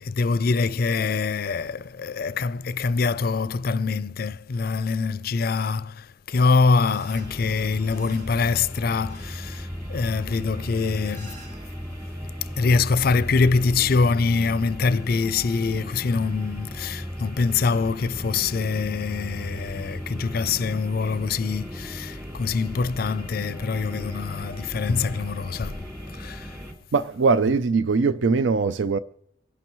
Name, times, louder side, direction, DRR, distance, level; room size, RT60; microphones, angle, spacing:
voice 1, 0.0-11.4 12.6-25.8 26.1-26.5 27.5-27.6, left 4 dB, 50° left, 0.4 m, -24 dB
sound 1, 6.8-12.1, right 2 dB, 40° right, 3.2 m, -52 dB
sound 2, 7.1-26.7, equal, 15° right, 2.1 m, -37 dB
voice 2, 26.9-29.0, right 4 dB, 80° right, 0.5 m, -21 dB
26.0 x 11.5 x 3.1 m
head